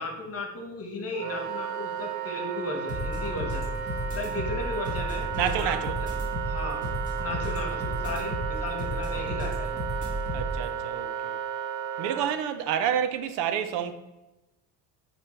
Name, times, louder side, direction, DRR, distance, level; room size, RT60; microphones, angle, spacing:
voice 1, 0.0-3.7 4.1-5.8 6.5-6.8 7.2-9.7, left 2 dB, 35° left, 1.4 m, -35 dB
Wind instrument woodwind instrument, 1.1-12.4, right 9 dB, 45° right, 0.5 m, -34 dB
sound 1, 2.9-10.6, equal, 20° right, 1.8 m, -33 dB
voice 2, 5.3-6.0 10.3-11.4 12.0-13.9, right 9 dB, 90° right, 0.8 m, -29 dB
9.8 x 3.4 x 4.4 m
cardioid pair, 160°, 40 cm